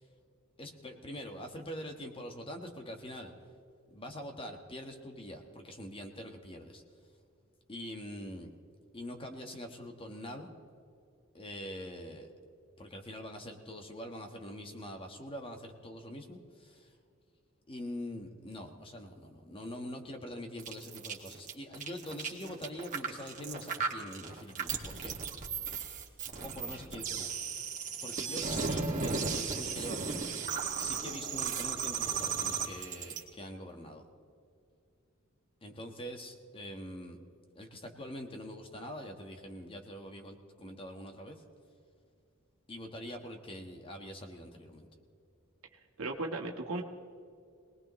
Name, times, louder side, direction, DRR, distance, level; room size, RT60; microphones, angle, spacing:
voice 1, 0.6-3.3 3.9-6.8 7.7-8.5 8.9-10.5 11.3-12.3 12.8-16.9 17.7-25.1 26.4-27.3 27.6-27.7 28.0-30.2 30.8-34.0 35.6-37.2 37.5-41.4 42.7-44.9, left 1 dB, 25° left, 4 dB, 1.4 m, -44 dB
sound 1, 20.6-33.2, right 5 dB, 40° right, 1.9 m, -35 dB
voice 2, 46.0-46.8, right 2 dB, 90° right, 0 dB, 1.5 m, -35 dB
23.0 x 19.5 x 3.2 m, 2.4 s
head